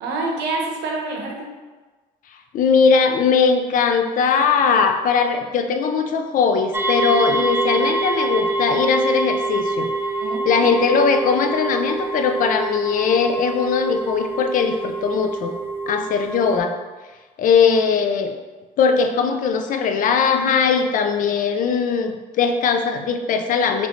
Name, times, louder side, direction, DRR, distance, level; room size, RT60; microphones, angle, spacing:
voice 1, 0.0-1.5 7.7-7.8 10.2-10.7, right 3 dB, 80° right, 0 dB, 0.8 m, -27 dB
voice 2, 2.5-9.9 10.5-15.6 15.9-16.7 17.4-18.3 18.8-23.9, left 5 dB, 55° left, 6 dB, 0.4 m, -19 dB
sound 1, 6.7-16.6, right 3 dB, 15° right, 0.3 m, -25 dB
4.0 x 3.0 x 3.0 m, 1.3 s
cardioid pair, 110°, 17 cm